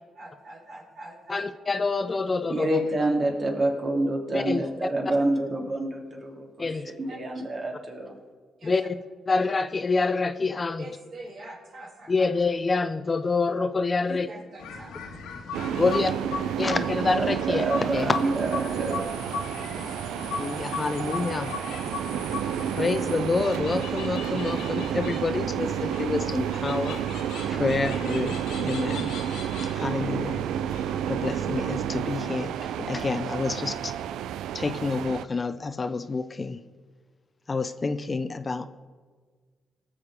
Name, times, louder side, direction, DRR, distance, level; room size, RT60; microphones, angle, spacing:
voice 1, 0.2-1.5 7.1-7.2 8.6-8.7 10.8-12.3 14.1-15.1 15.8-16.0 22.3-22.4 22.7-22.8, right 2 dB, 60° right, -1 dB, 3.2 m, -43 dB
voice 2, 1.3-2.8 4.3-4.6 6.6-6.9 8.6-9.0 9.3-10.9 12.1-14.3 15.8-16.1 16.6-17.6 17.9-18.2 20.4-21.6 22.8-27.0 27.5-29.1 29.7-30.5 31.1-33.9 34.5-36.6 37.5-38.7, left 3 dB, 35° left, 10 dB, 0.7 m, -27 dB
voice 3, 2.5-6.7 7.0-8.2 17.1-19.1, right 1 dB, 45° right, 1 dB, 2.7 m, -28 dB
sound 1, 14.6-31.8, left 5 dB, 85° left, 1.7 m, -38 dB
sound 2, 15.5-35.2, right 10 dB, 80° right, 0.3 m, -30 dB
18.0 x 7.2 x 4.9 m, 1.5 s
supercardioid pair, 60°, 0 cm